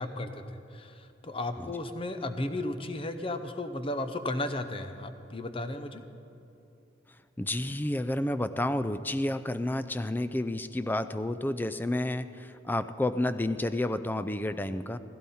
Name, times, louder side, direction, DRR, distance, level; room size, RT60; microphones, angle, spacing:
voice 1, 0.0-6.0, left 2 dB, 25° left, 8 dB, 0.7 m, -34 dB
voice 2, 7.4-15.0, left 1 dB, 10° left, 12 dB, 0.4 m, -30 dB
16.0 x 16.0 x 4.2 m, 2.9 s
head